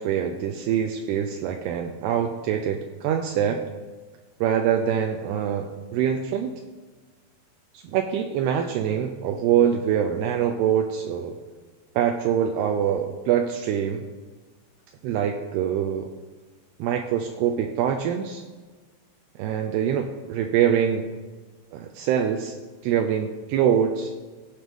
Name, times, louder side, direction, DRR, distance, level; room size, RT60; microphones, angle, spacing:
voice 1, 0.0-3.6 4.4-6.5 7.7-11.4 12.0-14.0 15.0-16.1 16.8-18.4 19.4-21.1 21.7-22.6 22.8-24.1, right 9 dB, 80° right, 4 dB, 2.6 m, -24 dB
17.0 x 6.4 x 3.6 m, 1.4 s
omnidirectional pair, 5.0 m